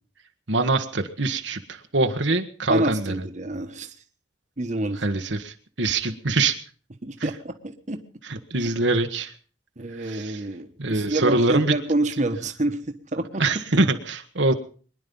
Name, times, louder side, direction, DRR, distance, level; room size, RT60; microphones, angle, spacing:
voice 1, 0.5-3.1 5.0-6.6 7.2-7.3 8.2-9.3 10.0-10.4 10.8-11.7 12.2-12.3 13.4-14.5, right 2 dB, 80° right, 7 dB, 1.5 m, -24 dB
voice 2, 2.7-3.9 4.6-5.0 7.0-8.0 9.8-13.4, right 2 dB, 40° right, 7 dB, 1.3 m, -27 dB
23.0 x 11.0 x 5.4 m, 0.42 s
head